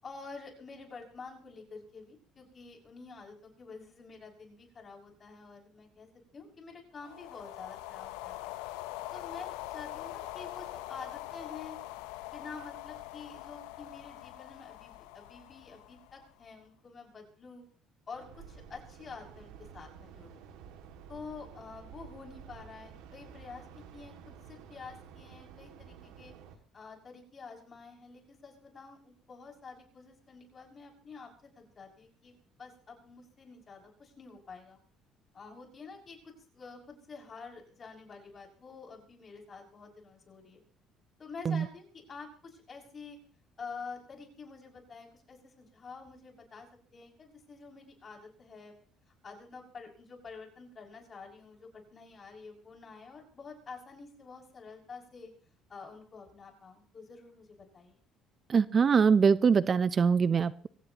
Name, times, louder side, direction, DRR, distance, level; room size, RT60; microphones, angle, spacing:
voice 1, 0.0-6.1 6.3-8.5 9.1-11.8 12.3-17.6 18.1-20.4 21.1-26.3 26.7-34.8 35.3-40.6 41.2-43.2 43.6-46.7 46.9-48.7 49.2-55.3 55.7-58.0, left 4 dB, 40° left, 0 dB, 6.6 m, -48 dB
sound 1, 7.0-16.5, left 16 dB, 90° left, 0.8 m, -43 dB
sound 2, 18.1-26.6, right 7 dB, 85° right, 2.3 m, -51 dB
voice 2, 58.5-60.7, right 6 dB, 40° right, 17 dB, 0.6 m, -23 dB
23.5 x 17.0 x 3.0 m, 0.42 s
supercardioid pair, 80°, 0 cm